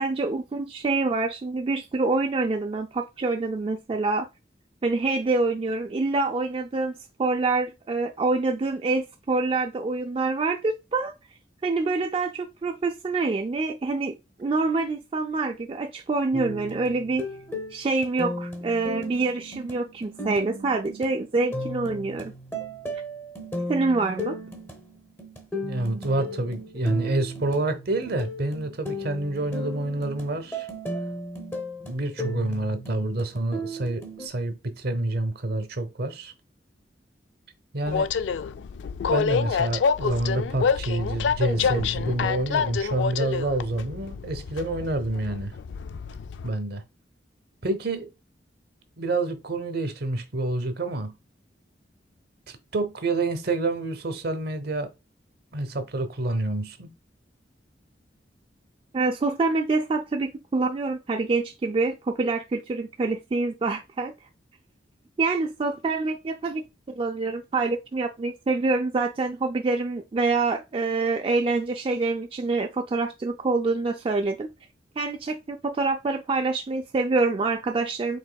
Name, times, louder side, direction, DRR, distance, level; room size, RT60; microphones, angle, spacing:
voice 1, 0.0-4.3 4.8-6.9 7.2-11.1 11.6-17.2 17.7-22.3 23.7-24.4 58.9-64.1 65.2-66.6 67.0-74.5 75.0-78.2, right 3 dB, 30° right, 0.3 m, -26 dB
sound 1, 16.3-34.3, equal, 15° left, 0.8 m, -36 dB
voice 2, 25.6-30.7 31.8-36.3 37.7-38.1 39.1-45.5 46.4-46.8 47.6-48.1 49.0-51.1 52.7-54.9 55.5-56.9, right 2 dB, 60° right, 0.8 m, -28 dB
Train, 37.9-46.5, left 6 dB, 90° left, 0.3 m, -27 dB
5.1 x 3.6 x 2.2 m
head